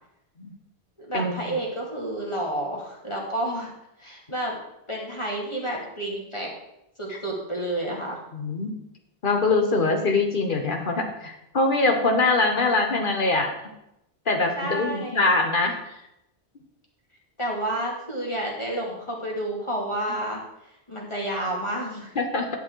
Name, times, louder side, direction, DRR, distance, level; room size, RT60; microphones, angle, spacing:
voice 1, 1.0-3.7 4.0-4.6 4.9-6.5 7.0-8.2 14.6-15.3 17.4-22.1, right 1 dB, 25° left, -2 dB, 2.4 m, -30 dB
voice 2, 8.3-8.7 9.2-13.5 14.3-15.7 22.1-22.5, left 3 dB, 50° left, 3 dB, 1.4 m, -23 dB
11.0 x 6.7 x 4.6 m, 0.85 s
omnidirectional pair, 1.1 m